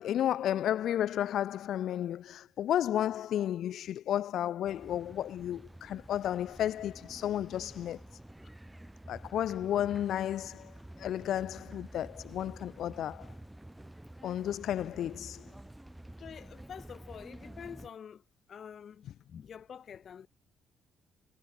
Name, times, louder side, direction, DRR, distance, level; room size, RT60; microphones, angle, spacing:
voice 1, 0.0-8.0 9.1-13.3 14.2-15.5, left 11 dB, 75° left, 0.4 m, -32 dB
sound 1, 4.6-17.9, right 1 dB, 10° right, 5.9 m, -50 dB
voice 2, 16.2-18.2 18.5-20.3, left 7 dB, 55° left, 5.9 m, -47 dB
cardioid pair, 90°, 0 cm